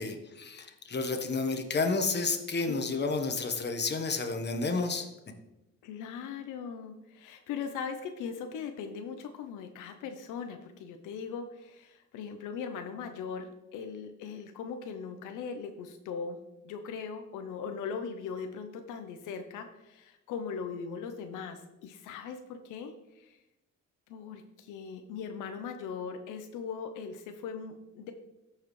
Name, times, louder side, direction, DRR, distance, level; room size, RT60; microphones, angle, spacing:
voice 1, 0.0-5.1, left 3 dB, 35° left, 5 dB, 1.2 m, -31 dB
voice 2, 2.7-3.1 5.8-16.4 16.6-23.4 24.1-28.1, left 6 dB, 90° left, 7 dB, 0.7 m, -39 dB
13.5 x 4.8 x 3.2 m, 0.96 s
cardioid pair, 90°, 30 cm